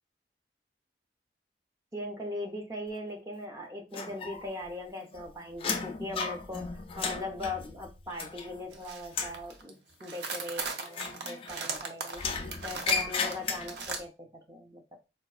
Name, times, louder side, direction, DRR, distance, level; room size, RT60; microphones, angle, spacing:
voice 1, 1.9-12.3 12.6-14.8, left 2 dB, 20° right, 2 dB, 0.6 m, -40 dB
sound 1, 3.9-4.7 5.0-8.7 9.0-9.5 10.9-11.8 12.1-14.0, left 5 dB, 30° left, 0.3 m, -35 dB
sound 2, 8.7-9.1 9.3-9.7 10.0-14.0, right 4 dB, 75° right, 0.6 m, -37 dB
3.9 x 2.3 x 2.3 m, 0.29 s
head